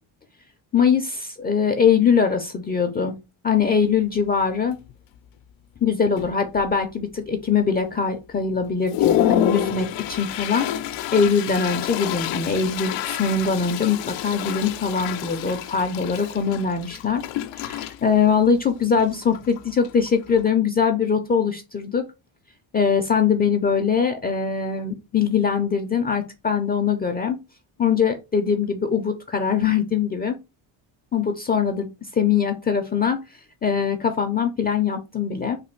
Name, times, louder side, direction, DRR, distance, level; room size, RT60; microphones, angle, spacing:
voice 1, 0.7-3.2 3.4-4.8 5.8-17.2 17.6-22.1 22.7-27.4 27.8-30.4 31.1-31.9 32.1-33.2 33.6-35.6, left 6 dB, 25° left, 5 dB, 0.4 m, -22 dB
Toilet flush, 3.6-3.7 4.2-4.4 4.7-5.3 5.8-5.9 6.2-6.9 7.4-7.5 8.0-8.1 8.5-20.5, left 12 dB, 85° left, 0.5 m, -28 dB
3.3 x 2.3 x 4.3 m, 0.27 s
cardioid pair, 120°, 43 cm